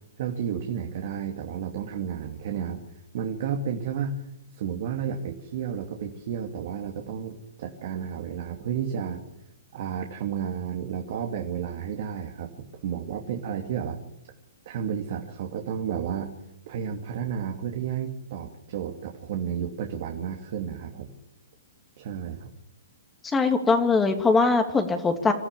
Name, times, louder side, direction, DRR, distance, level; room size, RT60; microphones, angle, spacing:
voice 1, 0.2-2.8 3.1-4.2 4.5-9.2 9.7-14.0 14.7-16.4 16.7-21.1 22.0-22.5, right 8 dB, 55° right, 2 dB, 2.7 m, -32 dB
voice 2, 23.2-25.3, left 4 dB, 15° left, 6 dB, 2.6 m, -21 dB
27.0 x 14.0 x 7.0 m, 0.81 s
hypercardioid pair, 120°, 0 cm